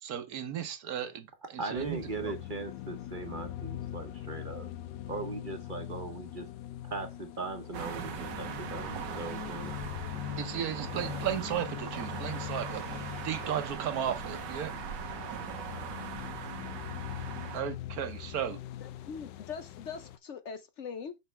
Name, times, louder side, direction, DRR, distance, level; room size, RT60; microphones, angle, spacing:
voice 1, 0.0-2.3 10.4-12.8 13.2-14.7 17.5-18.6, right 9 dB, 60° right, 1.3 m, -35 dB
voice 2, 1.6-4.7 5.1-6.5 6.8-9.8, right 3 dB, 35° right, 0.9 m, -39 dB
sound 1, 1.7-20.2, left 12 dB, 80° left, 1.2 m, -42 dB
sound 2, 7.7-17.6, right 8 dB, 80° right, 1.5 m, -40 dB
voice 3, 18.8-21.2, left 6 dB, 65° left, 0.7 m, -42 dB
6.9 x 6.3 x 3.3 m
omnidirectional pair, 1.9 m